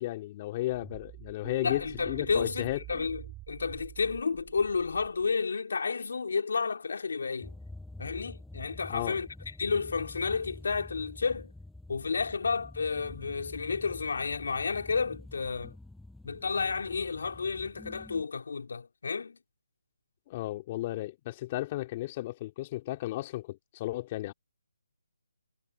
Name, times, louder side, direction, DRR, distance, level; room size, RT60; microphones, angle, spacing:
voice 1, 0.0-2.8 8.9-9.2 20.3-24.3, left 16 dB, 25° left, 3.2 m, -34 dB
sound 1, 0.7-5.4, right 17 dB, 15° right, 3.5 m, -47 dB
voice 2, 1.6-7.5 8.0-9.3 9.6-11.5 11.9-15.8 16.2-19.4, left 5 dB, 65° left, 4.1 m, -31 dB
sound 2, 7.4-18.2, left 2 dB, ahead, 6.5 m, -48 dB
hypercardioid pair, 160°, 0 cm